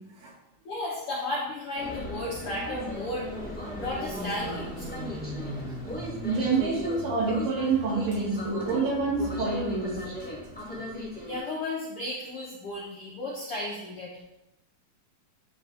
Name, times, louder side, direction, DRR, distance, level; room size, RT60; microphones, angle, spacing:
voice 1, 0.6-3.3 3.8-4.9 11.3-14.1, left 2 dB, 75° left, -4 dB, 1.3 m, -34 dB
sound 1, 1.8-11.4, equal, 10° left, 0.4 m, -37 dB
voice 2, 6.2-10.0, right 4 dB, 75° right, -4 dB, 3.5 m, -27 dB
9.8 x 3.5 x 4.2 m, 0.94 s
omnidirectional pair, 4.0 m